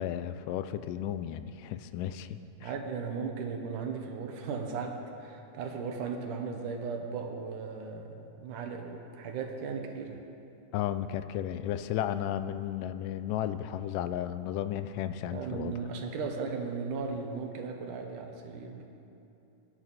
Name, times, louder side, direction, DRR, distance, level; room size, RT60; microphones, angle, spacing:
voice 1, 0.0-2.7 10.7-15.7, left 11 dB, 85° left, 12 dB, 2.2 m, -34 dB
voice 2, 2.6-10.2 15.3-18.9, right 5 dB, 75° right, 3 dB, 2.6 m, -36 dB
23.0 x 11.0 x 4.2 m, 2.8 s
omnidirectional pair, 3.8 m